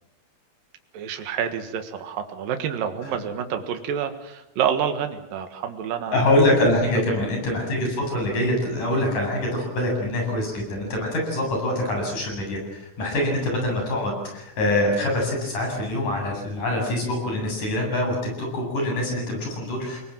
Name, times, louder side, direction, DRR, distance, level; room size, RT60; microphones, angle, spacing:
voice 1, 0.9-6.2 7.1-7.3, right 8 dB, 80° right, 7 dB, 3.4 m, -28 dB
voice 2, 6.1-20.0, left 1 dB, 65° left, 1 dB, 9.7 m, -24 dB
29.0 x 21.0 x 7.5 m, 0.85 s
omnidirectional pair, 3.9 m